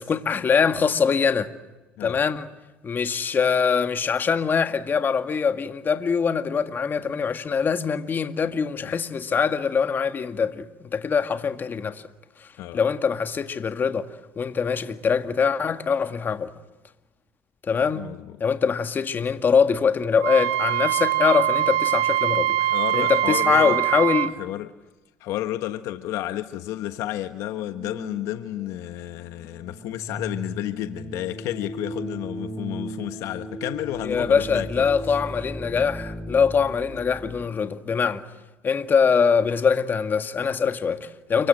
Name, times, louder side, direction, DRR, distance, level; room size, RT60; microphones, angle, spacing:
voice 1, 0.0-1.5 2.0-2.5 2.8-12.0 12.7-14.1 14.4-16.5 17.7-18.0 18.4-22.6 22.9-24.3 34.0-38.2 38.6-41.5, left 6 dB, 40° left, 2.0 m, -23 dB
voice 2, 17.9-18.4 22.6-23.8 24.4-24.7 25.2-34.9, left 14 dB, 70° left, 1.2 m, -31 dB
Wind instrument woodwind instrument, 20.2-24.3, right 13 dB, 85° right, 2.5 m, -23 dB
sound 1, 26.4-37.5, right 1 dB, 5° left, 3.7 m, -37 dB
30.0 x 24.5 x 7.9 m
supercardioid pair, 75°, 5 cm